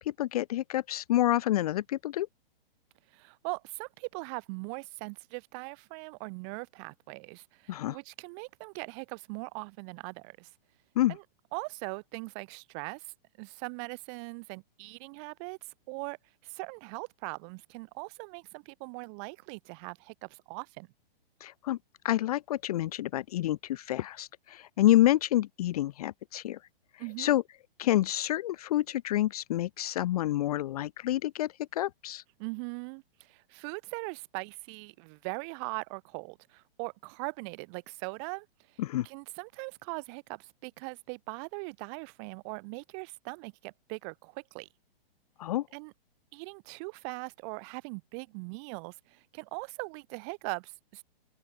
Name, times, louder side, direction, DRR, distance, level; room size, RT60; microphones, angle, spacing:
voice 1, 0.0-2.3 7.7-8.0 11.0-11.2 21.4-21.8 22.0-26.6 27.2-27.4 27.8-32.2 38.8-39.1 45.4-45.7, left 14 dB, 40° left, 0.6 m, -28 dB
voice 2, 3.1-10.5 11.1-11.2 11.5-15.6 15.9-16.2 16.4-20.9 27.0-27.3 32.4-38.8 39.0-44.7 45.7-45.9 46.3-51.0, right 37 dB, 30° right, 2.0 m, -40 dB
open air
hypercardioid pair, 155°, 30 cm